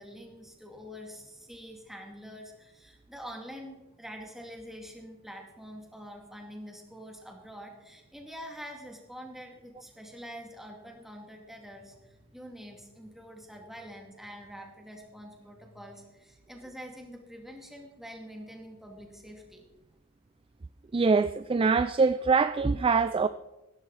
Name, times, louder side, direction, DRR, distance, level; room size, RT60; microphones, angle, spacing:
voice 1, 0.0-19.6, equal, ahead, 2.3 m, -46 dB
voice 2, 20.9-23.3, right 4 dB, 25° right, 0.3 m, -24 dB
16.5 x 13.5 x 4.1 m
head